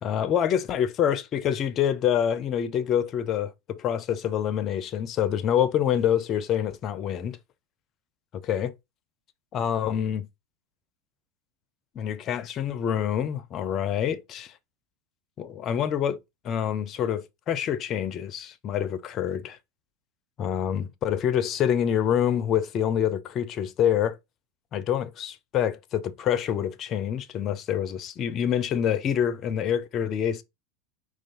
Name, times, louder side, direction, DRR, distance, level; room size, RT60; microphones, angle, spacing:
voice 1, 0.0-7.4 8.4-8.7 9.5-10.3 11.9-14.5 15.4-16.2 16.4-19.6 20.4-24.2 24.7-30.4, left 9 dB, 40° left, 0.6 m, -26 dB
4.5 x 2.4 x 4.2 m
figure-of-eight pair, 80°, 0 cm